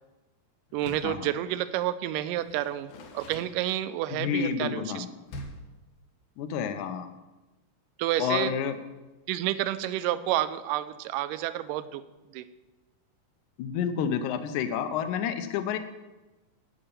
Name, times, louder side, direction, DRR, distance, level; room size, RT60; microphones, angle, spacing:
Door, 0.7-1.2 2.4-4.1 5.3-5.8, left 1 dB, 90° left, 3.2 m, -44 dB
voice 1, 0.7-2.9 3.1-5.1 8.0-8.5 9.3-12.0 12.3-12.5, right 13 dB, 80° right, 12 dB, 2.2 m, -29 dB
voice 2, 4.1-5.1 6.4-7.1 8.2-8.8 13.6-15.8, left 8 dB, 70° left, 8 dB, 2.1 m, -29 dB
12.5 x 5.5 x 8.8 m, 1.1 s
omnidirectional pair, 4.0 m